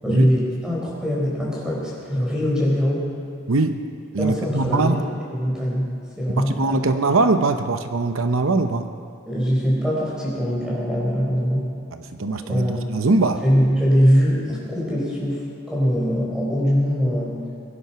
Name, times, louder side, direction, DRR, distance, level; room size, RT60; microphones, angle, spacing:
voice 1, 0.0-3.1 4.2-7.0 9.3-11.7 12.4-12.8 13.4-17.4, equal, 5° right, -5 dB, 4.4 m, -22 dB
voice 2, 4.1-5.0 6.3-8.9 11.9-13.4, right 3 dB, 85° right, 8 dB, 0.8 m, -22 dB
22.5 x 11.0 x 5.8 m, 2.3 s
head